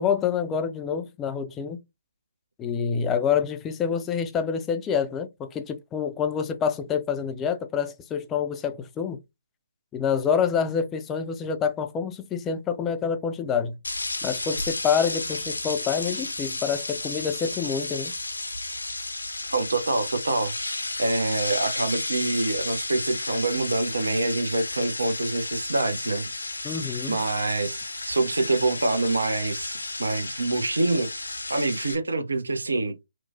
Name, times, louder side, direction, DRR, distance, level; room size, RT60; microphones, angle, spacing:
voice 1, 0.0-1.8 2.6-9.2 9.9-13.8 14.2-18.1 26.6-27.2, left 7 dB, 15° left, 0.3 m, -27 dB
sound 1, 13.8-32.0, left 2 dB, 75° left, 0.6 m, -33 dB
voice 2, 19.5-20.5 21.0-26.3 27.1-32.9, right 2 dB, 70° right, 0.5 m, -26 dB
2.9 x 2.1 x 2.6 m
figure-of-eight pair, 140°, 0 cm